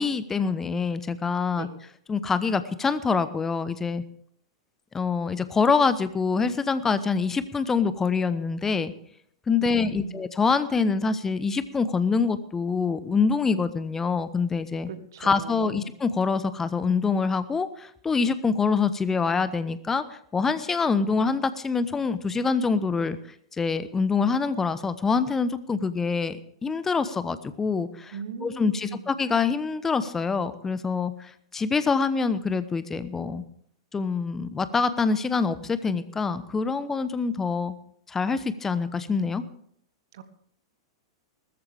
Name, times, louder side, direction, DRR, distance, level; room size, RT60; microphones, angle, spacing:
voice 1, 0.0-1.7 2.1-4.0 4.9-8.9 9.5-14.9 15.2-23.2 23.6-26.4 26.6-28.2 28.4-33.4 33.9-37.7 38.1-39.4, left 5 dB, 15° left, 13 dB, 0.9 m, -25 dB
voice 2, 9.6-10.2 14.9-15.9 28.1-29.1 40.1-40.2, right 7 dB, 60° right, 11 dB, 1.5 m, -39 dB
20.0 x 14.0 x 3.5 m, 0.65 s
figure-of-eight pair, 100°, 2 cm